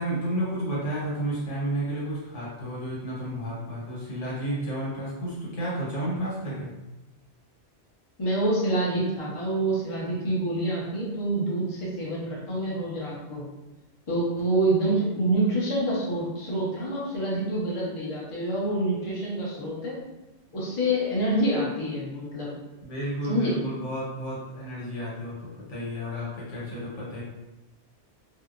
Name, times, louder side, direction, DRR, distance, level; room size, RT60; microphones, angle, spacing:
voice 1, 0.0-6.7 22.8-25.3 25.7-27.2, right 1 dB, 90° left, -7 dB, 1.3 m, -31 dB
voice 2, 8.2-13.5 14.1-20.0 20.5-22.5 23.3-23.5, right 1 dB, 30° left, -6 dB, 0.7 m, -27 dB
2.6 x 2.0 x 2.4 m, 1.0 s
omnidirectional pair, 1.2 m